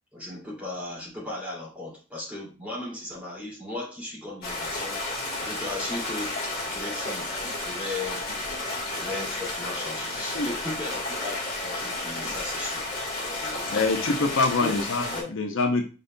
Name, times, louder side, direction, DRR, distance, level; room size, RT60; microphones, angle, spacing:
voice 1, 0.1-6.4 6.7-7.4 7.6-8.3 8.5-12.9 13.3-13.8 14.5-14.8 15.1-15.3, left 2 dB, 5° right, -5 dB, 2.2 m, -37 dB
Stream, 4.4-15.2, left 2 dB, 45° left, 1.5 m, -32 dB
voice 2, 13.7-15.1 15.3-15.8, left 3 dB, 70° left, 4 dB, 0.6 m, -24 dB
5.1 x 4.1 x 2.2 m, 0.33 s
head